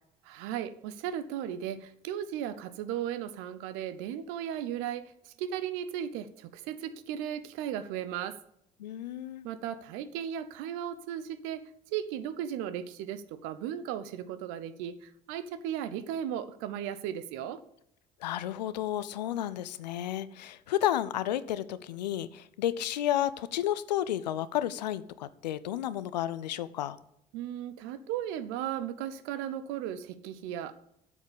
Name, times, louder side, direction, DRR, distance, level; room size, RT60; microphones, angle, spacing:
voice 1, 0.2-8.4 9.4-11.6 11.9-17.6 27.3-30.7, right 10 dB, 70° right, 13 dB, 0.8 m, -36 dB
voice 2, 8.8-9.5 18.2-27.0, left 12 dB, 85° left, 15 dB, 0.5 m, -32 dB
8.2 x 7.3 x 8.4 m, 0.78 s
hypercardioid pair, 50°, 21 cm